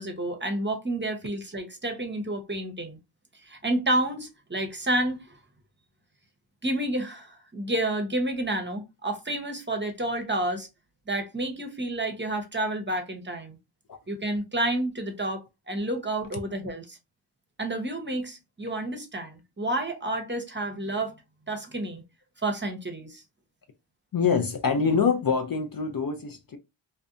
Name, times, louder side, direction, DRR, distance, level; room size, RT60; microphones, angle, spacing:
voice 1, 0.0-3.0 3.4-5.4 6.6-10.7 11.1-13.6 14.1-17.0 17.6-21.1 21.5-22.0 22.4-23.2, right 1 dB, 20° right, 0.8 m, -30 dB
voice 2, 24.1-26.6, left 5 dB, 45° left, 0.5 m, -25 dB
2.5 x 2.2 x 2.4 m
cardioid pair, 50°, 50 cm